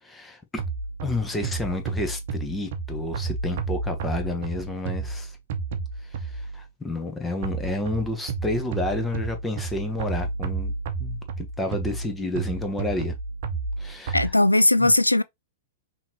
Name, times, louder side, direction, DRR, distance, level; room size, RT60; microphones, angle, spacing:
voice 1, 0.0-0.6 1.0-5.3 6.1-10.7 11.0-13.1 13.8-14.3 14.8-14.9, left 2 dB, 10° left, 1.0 m, -30 dB
sound 1, 0.6-6.6 7.4-14.3, right 4 dB, 50° right, 0.9 m, -31 dB
voice 2, 14.1-15.2, left 2 dB, 85° left, 0.4 m, -18 dB
5.6 x 2.9 x 2.9 m
figure-of-eight pair, 105°, 0 cm